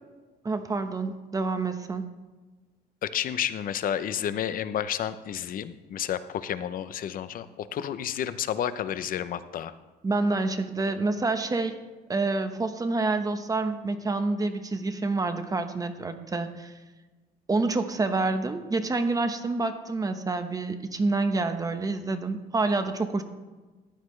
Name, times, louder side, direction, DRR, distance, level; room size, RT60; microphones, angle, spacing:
voice 1, 0.4-2.0 10.0-11.8 12.1-16.7 17.5-23.2, right 3 dB, 20° right, 8 dB, 1.0 m, -27 dB
voice 2, 3.0-9.7, left 10 dB, 55° left, 13 dB, 0.7 m, -31 dB
15.0 x 10.5 x 3.3 m, 1.3 s
cardioid pair, 110°, 17 cm